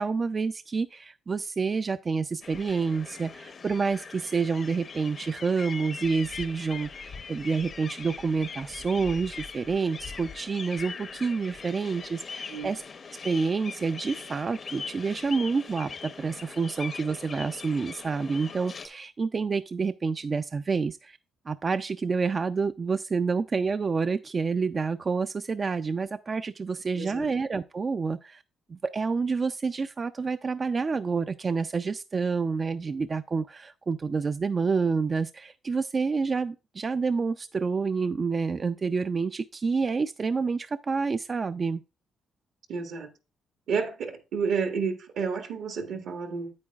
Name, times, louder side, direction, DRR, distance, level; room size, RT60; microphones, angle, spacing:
voice 1, 0.0-12.8 13.2-21.2 21.5-28.4 28.7-41.8, right 4 dB, 35° right, 0.3 m, -28 dB
sound 1, 2.4-18.9, left 5 dB, 45° left, 0.6 m, -41 dB
voice 2, 26.9-27.3 42.7-43.1 43.7-46.5, right 5 dB, 75° right, 1.5 m, -30 dB
8.7 x 8.5 x 2.3 m
cardioid pair, 90°, 0 cm